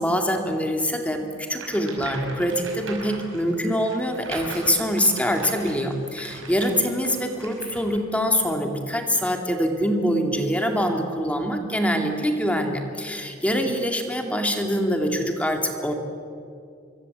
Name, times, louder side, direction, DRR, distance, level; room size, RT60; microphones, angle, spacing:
voice 1, 0.0-15.9, equal, 5° left, 3 dB, 2.3 m, -24 dB
sound 1, 1.5-8.0, right 3 dB, 75° right, 5.5 m, -40 dB
25.5 x 23.0 x 8.0 m, 2.5 s
head